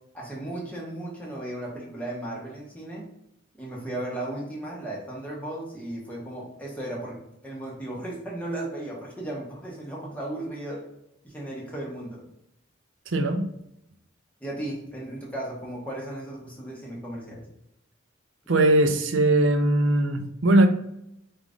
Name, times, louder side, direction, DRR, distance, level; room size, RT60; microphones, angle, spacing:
voice 1, 0.1-3.0 3.6-7.2 7.4-10.8 11.2-12.2 14.4-17.5, right 1 dB, 5° left, -4 dB, 1.1 m, -35 dB
voice 2, 13.1-13.5 18.5-20.7, right 1 dB, 65° right, 7 dB, 0.6 m, -20 dB
4.9 x 2.6 x 3.4 m, 0.80 s
head